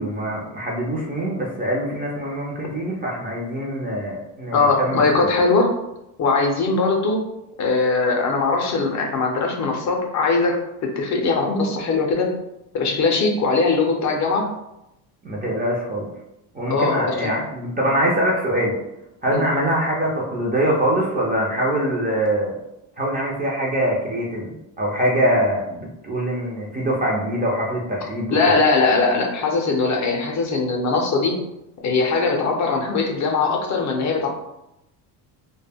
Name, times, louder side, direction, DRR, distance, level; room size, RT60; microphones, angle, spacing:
voice 1, 0.0-5.0 15.2-16.1 16.5-18.7 19.2-22.5 23.0-28.4, right 1 dB, 20° right, -3 dB, 0.4 m, -23 dB
voice 2, 4.5-5.7 6.2-7.2 7.6-12.3 12.7-14.5 16.7-17.4 19.3-19.5 28.3-31.3 31.8-34.3, left 3 dB, 40° left, 1 dB, 0.5 m, -20 dB
2.1 x 2.1 x 3.3 m, 0.88 s
cardioid pair, 115°, 43 cm